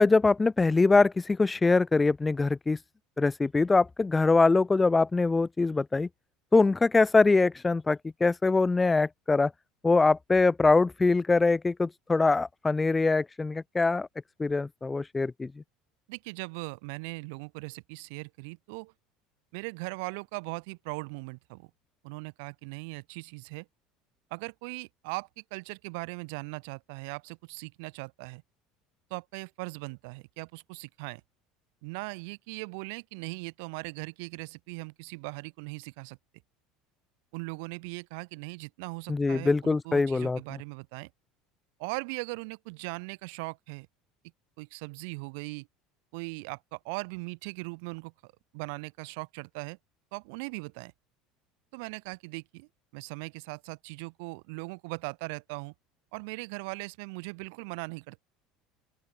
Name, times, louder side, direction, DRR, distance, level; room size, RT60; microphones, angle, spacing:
voice 1, 0.0-2.8 3.2-6.1 6.5-9.5 9.8-14.1 14.4-15.5 39.1-40.4, left 3 dB, 15° left, 0.9 m, -23 dB
voice 2, 16.1-18.9 19.5-21.7 22.0-23.7 24.3-28.4 29.1-31.2 31.8-36.2 37.3-41.1 41.8-43.9 44.6-45.7 46.1-49.8 50.1-50.9 51.7-55.7 56.1-58.3, right 31 dB, 80° right, 5.4 m, -39 dB
open air
supercardioid pair, 115°, 0 cm